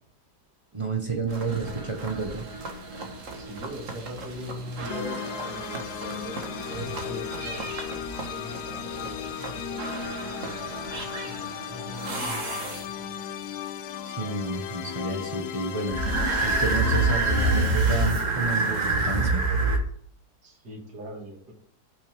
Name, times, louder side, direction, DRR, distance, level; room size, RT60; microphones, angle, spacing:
voice 1, 0.7-2.4 14.0-19.4, right 3 dB, 20° right, 2 dB, 1.3 m, -30 dB
sound 1, 1.3-13.2 15.9-19.8, right 3 dB, 45° right, 1.8 m, -29 dB
voice 2, 3.3-11.4 11.7-12.9 20.4-21.5, equal, 65° right, 0 dB, 3.1 m, -41 dB
sound 2, 4.9-17.7, left 10 dB, 70° left, 1.1 m, -36 dB
16.5 x 6.0 x 3.7 m, 0.64 s
omnidirectional pair, 1.9 m